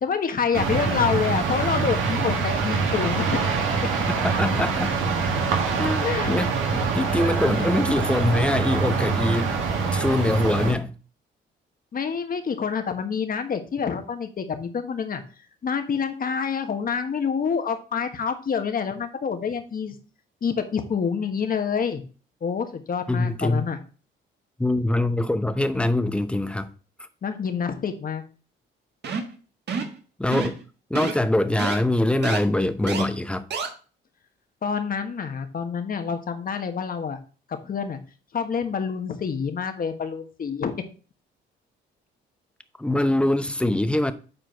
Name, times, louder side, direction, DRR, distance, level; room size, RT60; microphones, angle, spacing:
voice 1, 0.0-3.4 6.0-6.3 11.9-15.2 15.6-20.0 20.4-22.0 22.4-23.8 27.2-28.2 34.6-37.2 37.6-38.0 38.3-40.7, left 6 dB, 45° left, 1.4 m, -27 dB
sound 1, 0.5-10.7, right 4 dB, 85° right, 1.8 m, -24 dB
voice 2, 4.1-4.9 5.8-9.6 9.9-11.0 23.1-23.7 24.6-26.7 30.2-30.6 30.9-33.5 42.8-44.1, left 1 dB, 5° left, 0.8 m, -23 dB
sound 2, 29.0-29.3 29.7-30.0 30.3-30.6 30.9-31.1 31.6-31.8 32.2-32.4 32.9-33.0 33.5-33.7, right 5 dB, 60° right, 1.6 m, -28 dB
7.9 x 4.4 x 4.5 m
cardioid pair, 90°, 20 cm